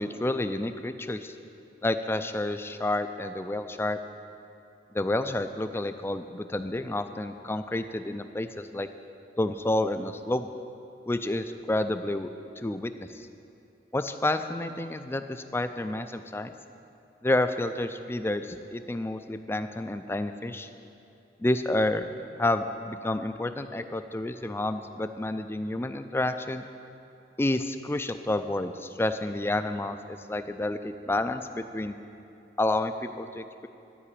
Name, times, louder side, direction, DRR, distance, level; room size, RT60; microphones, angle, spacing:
voice 1, 0.0-1.3 1.8-4.0 4.9-8.9 9.4-10.5 11.1-12.3 12.6-13.2 13.9-16.5 17.2-20.7 21.4-22.1 22.4-26.7 27.4-31.9 32.6-33.7, left 1 dB, 15° left, 9 dB, 0.4 m, -29 dB
12.5 x 4.9 x 8.4 m, 2.6 s
head